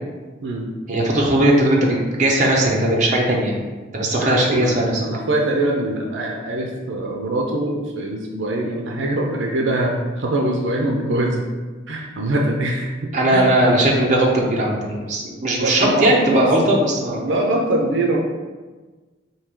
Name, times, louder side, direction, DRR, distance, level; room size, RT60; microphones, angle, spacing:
voice 1, 0.9-3.6 3.9-5.1 13.1-17.3, right 1 dB, 40° right, -2 dB, 0.7 m, -18 dB
voice 2, 4.0-11.4 11.9-12.9 13.3-13.8 15.6-16.6 17.2-18.2, right 1 dB, 75° right, 0 dB, 0.5 m, -23 dB
4.7 x 2.7 x 3.7 m, 1.3 s
head